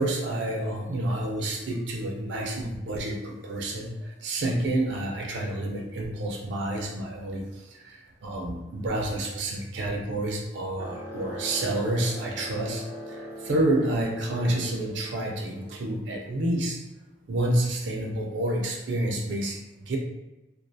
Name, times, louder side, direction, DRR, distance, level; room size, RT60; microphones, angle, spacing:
voice 1, 0.0-16.8 17.3-20.0, right 1 dB, 75° right, 0 dB, 0.5 m, -29 dB
sound 1, 10.8-15.8, right 1 dB, 15° right, 0.3 m, -40 dB
2.3 x 2.2 x 2.6 m, 1.0 s
head